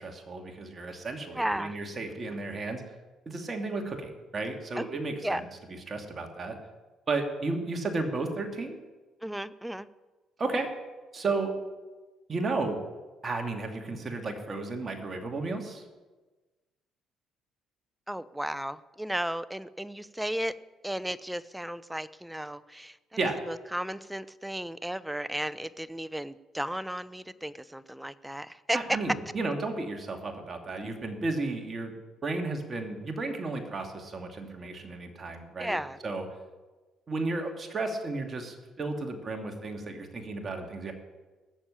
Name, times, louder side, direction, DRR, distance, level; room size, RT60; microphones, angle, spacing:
voice 1, 0.0-2.8 3.3-5.4 5.9-6.6 7.1-8.8 10.4-10.7 11.1-11.5 12.3-12.8 13.2-15.8 23.2-23.4 28.7-31.9 32.2-36.3 37.1-40.9, right 3 dB, 35° right, 4 dB, 2.7 m, -33 dB
voice 2, 1.3-1.8 4.8-4.9 5.2-5.4 9.2-9.9 18.1-20.5 20.8-23.0 23.5-28.8 35.6-36.0, right 1 dB, 5° right, 17 dB, 0.7 m, -34 dB
18.5 x 7.2 x 8.7 m, 1.2 s
supercardioid pair, 65°, 0 cm